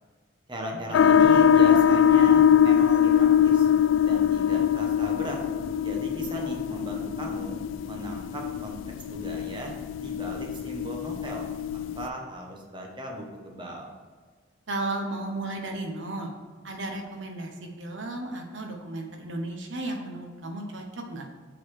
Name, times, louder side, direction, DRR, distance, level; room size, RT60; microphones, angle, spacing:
voice 1, 0.5-3.7 4.0-5.4 5.8-7.6 7.9-8.8 9.1-9.7 10.0-13.9, right 1 dB, 25° right, 0 dB, 1.2 m, -37 dB
sound 1, 0.9-12.1, left 8 dB, 85° left, 0.3 m, -22 dB
voice 2, 14.7-16.3 16.6-21.3, right 2 dB, 75° right, 2 dB, 1.2 m, -34 dB
7.7 x 4.1 x 6.5 m, 1.6 s
head